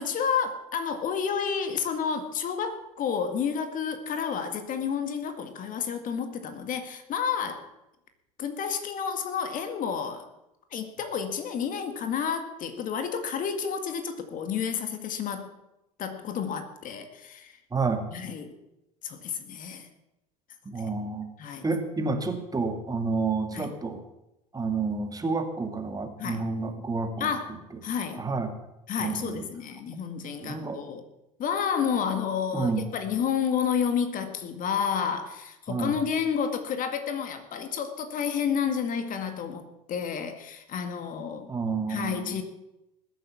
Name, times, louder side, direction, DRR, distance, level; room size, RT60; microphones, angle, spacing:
voice 1, 0.0-7.7 8.4-10.3 10.7-15.5 16.0-17.6 18.1-18.5 19.0-19.9 21.4-21.8 23.5-23.7 26.2-26.4 27.2-28.2 28.9-31.0 31.4-41.5 41.9-42.4, left 7 dB, 40° left, 8 dB, 2.1 m, -30 dB
voice 2, 17.7-18.0 20.7-21.3 21.6-24.0 24.5-27.3 28.1-28.5 29.0-29.4 30.4-30.8 32.5-32.8 35.7-36.0 41.5-42.4, right 4 dB, 20° right, 6 dB, 2.1 m, -29 dB
20.0 x 7.8 x 7.3 m, 0.91 s
figure-of-eight pair, 70°, 20 cm